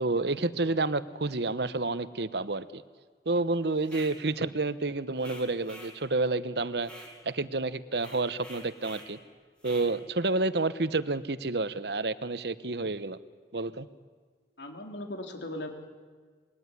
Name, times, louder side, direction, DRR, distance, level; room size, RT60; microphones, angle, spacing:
voice 1, 0.0-2.8 3.2-6.9 7.2-9.2 9.6-13.2 13.5-13.9, right 3 dB, 65° right, 14 dB, 1.0 m, -29 dB
sound 1, 3.8-4.2 5.2-6.0 6.8-7.2 8.0-9.1 9.6-9.9, left 1 dB, 5° left, 4.8 m, -47 dB
voice 2, 14.6-15.9, left 1 dB, 80° left, 4 dB, 3.8 m, -38 dB
26.5 x 21.5 x 9.9 m, 1.5 s
head